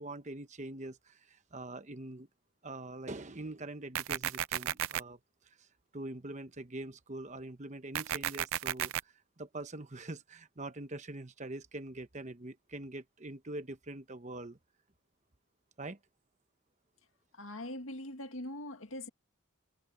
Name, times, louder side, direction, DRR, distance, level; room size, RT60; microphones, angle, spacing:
voice 1, 0.0-2.3 2.6-5.2 5.6-5.7 5.9-14.6 15.8-16.0, right 2 dB, 35° right, 1.0 m, -44 dB
sound 1, 3.9-5.0 7.9-9.0, right 11 dB, 85° right, 0.5 m, -33 dB
voice 2, 17.3-19.1, left 1 dB, 80° left, 1.9 m, -42 dB
head